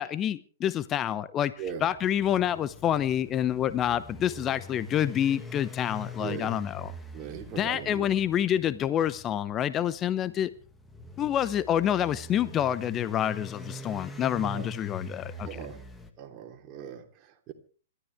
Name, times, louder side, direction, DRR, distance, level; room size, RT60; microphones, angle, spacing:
voice 1, 0.0-1.5 1.8-6.9 7.6-10.5 11.2-15.5, left 10 dB, 25° left, 0.8 m, -27 dB
sound 1, 1.6-16.1, left 2 dB, 10° left, 1.9 m, -43 dB
voice 2, 1.6-1.9 6.2-6.6 7.1-8.1 14.4-14.7 15.4-15.8 16.2-17.5, right 8 dB, 30° right, 3.2 m, -39 dB
26.5 x 13.0 x 3.5 m
figure-of-eight pair, 115°, 0 cm